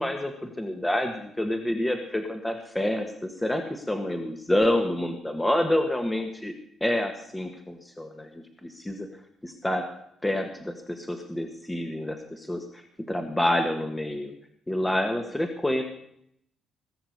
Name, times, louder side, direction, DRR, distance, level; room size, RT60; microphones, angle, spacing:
voice 1, 0.0-6.5 6.8-9.1 9.4-9.9 10.2-12.8 13.1-14.3 14.7-15.8, left 1 dB, 10° left, 5 dB, 1.6 m, -28 dB
18.5 x 6.9 x 8.0 m, 0.71 s
cardioid pair, 90°, 0 cm